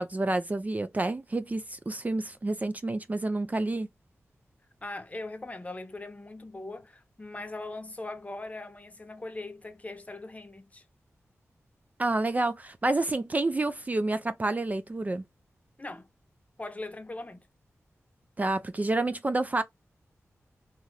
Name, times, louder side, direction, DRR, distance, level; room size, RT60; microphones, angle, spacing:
voice 1, 0.0-3.9 12.0-15.2 18.4-19.6, right 2 dB, 30° right, 0.3 m, -29 dB
voice 2, 4.8-10.8 15.8-16.1 16.6-17.4, left 2 dB, 25° left, 0.8 m, -40 dB
2.7 x 2.4 x 3.1 m
cardioid pair, 60°, 5 cm